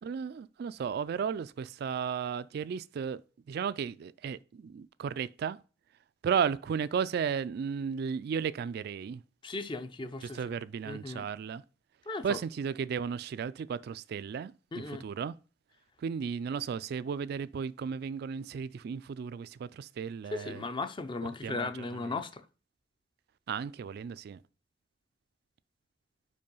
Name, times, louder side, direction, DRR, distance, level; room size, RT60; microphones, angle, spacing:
voice 1, 0.0-3.2 3.5-5.6 6.2-9.2 10.3-11.6 12.2-15.3 16.0-20.7 21.2-22.2 23.5-24.4, right 7 dB, 55° right, 0.3 m, -34 dB
voice 2, 9.4-10.4 10.8-11.3 12.1-12.4 14.7-15.0 20.3-22.4, left 3 dB, 25° left, 0.5 m, -36 dB
5.4 x 4.7 x 5.4 m
head